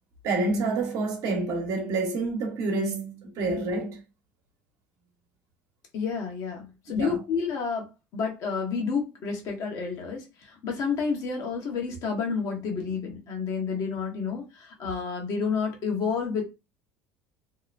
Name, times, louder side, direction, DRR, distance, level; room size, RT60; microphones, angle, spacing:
voice 1, 0.2-4.0 6.9-7.2, right 3 dB, 60° right, 0.9 m, -28 dB
voice 2, 5.9-16.4, left 5 dB, 55° left, 1.0 m, -30 dB
2.8 x 2.1 x 2.5 m
supercardioid pair, 100°, 7 cm